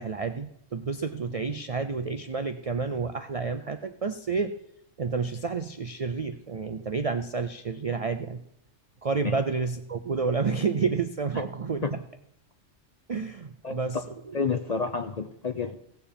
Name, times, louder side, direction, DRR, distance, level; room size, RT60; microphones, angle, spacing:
voice 1, 0.0-4.5 5.0-8.4 9.0-12.0 13.1-14.3, right 4 dB, 55° right, 9 dB, 0.4 m, -30 dB
voice 2, 14.3-15.8, left 5 dB, 45° left, 8 dB, 0.5 m, -29 dB
16.5 x 7.0 x 5.3 m, 0.77 s
omnidirectional pair, 1.3 m